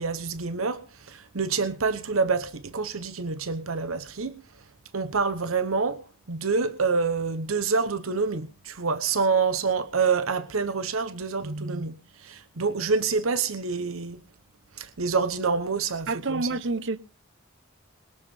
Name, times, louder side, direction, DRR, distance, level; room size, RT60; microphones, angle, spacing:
voice 1, 0.0-4.4 4.9-6.0 6.3-14.2 14.8-16.5, right 4 dB, 85° right, 1.0 m, -27 dB
voice 2, 16.1-17.0, right 3 dB, 60° right, 0.8 m, -28 dB
21.5 x 7.3 x 5.5 m
head